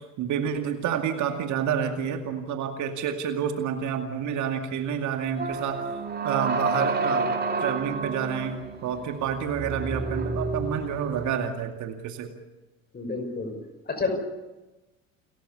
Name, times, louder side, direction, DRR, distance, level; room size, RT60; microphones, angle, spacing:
voice 1, 0.0-5.8 6.2-7.3 7.6-12.3, right 8 dB, 45° right, 6 dB, 2.3 m, -29 dB
sound 1, 5.4-11.4, right 3 dB, 25° right, 2.6 m, -30 dB
voice 2, 12.9-13.6 13.9-14.2, left 3 dB, 25° left, 7 dB, 5.5 m, -29 dB
29.5 x 14.0 x 8.5 m, 1.1 s
figure-of-eight pair, 60°, 40 cm